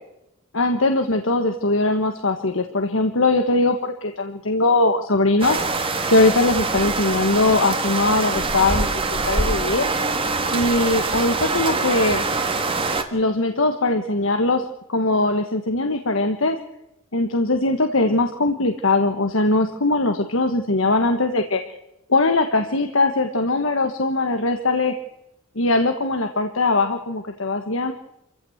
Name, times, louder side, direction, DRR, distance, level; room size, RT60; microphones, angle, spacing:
voice 1, 0.5-5.6 6.1-8.9 9.3-9.9 10.5-12.2 13.1-16.6 17.1-21.6 22.1-24.9 25.5-27.9, left 2 dB, 70° left, 6 dB, 1.5 m, -20 dB
sound 1, 5.4-13.0, right 3 dB, 25° right, 1.8 m, -24 dB
27.0 x 15.5 x 8.1 m, 0.86 s
head